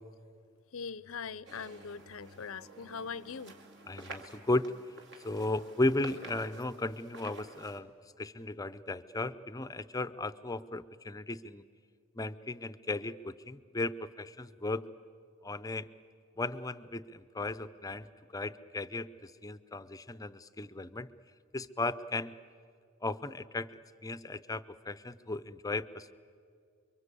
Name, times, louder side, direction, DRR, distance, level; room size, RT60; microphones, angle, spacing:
voice 1, 0.7-3.6, left 6 dB, 70° left, 18 dB, 0.6 m, -41 dB
sound 1, 1.5-7.8, right 3 dB, 55° right, 2.4 m, -51 dB
voice 2, 3.9-4.7 5.2-11.6 12.1-14.9 15.4-15.9 16.4-18.1 18.3-21.1 21.5-22.4 23.0-26.1, left 2 dB, 15° left, 14 dB, 0.6 m, -35 dB
29.5 x 23.5 x 8.3 m, 2.3 s
head